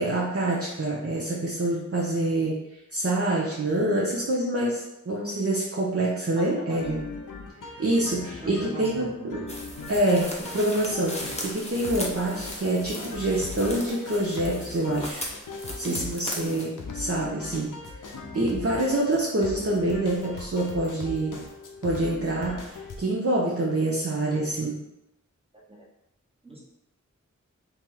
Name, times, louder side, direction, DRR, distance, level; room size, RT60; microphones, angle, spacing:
voice 1, 0.0-2.6 2.9-7.0 7.8-9.4 9.9-15.2 15.8-17.7 18.3-21.4 21.8-24.8, right 1 dB, 50° right, -5 dB, 0.7 m, -26 dB
voice 2, 6.3-6.8 8.4-9.5 15.8-16.1 17.3-17.5 25.7-25.8 26.4-26.6, right 1 dB, 20° right, -4 dB, 1.1 m, -39 dB
sound 1, 6.8-23.0, left 4 dB, 85° left, 0.6 m, -39 dB
sound 2, 9.5-16.7, left 1 dB, 20° left, 0.9 m, -38 dB
3.0 x 2.9 x 3.7 m, 0.86 s
wide cardioid pair, 45°, 31 cm